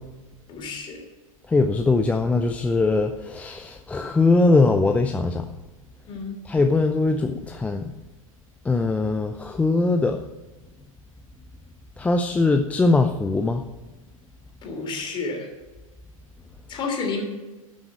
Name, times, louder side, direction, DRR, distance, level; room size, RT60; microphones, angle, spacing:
voice 1, 0.5-1.0 6.1-6.4 14.6-15.5 16.7-17.2, left 4 dB, 25° left, 2 dB, 3.0 m, -30 dB
voice 2, 1.5-5.4 6.5-7.9 8.7-10.2 12.0-13.6, left 3 dB, 5° left, 4 dB, 0.5 m, -21 dB
12.5 x 6.2 x 7.3 m, 1.1 s
figure-of-eight pair, 95°, 18 cm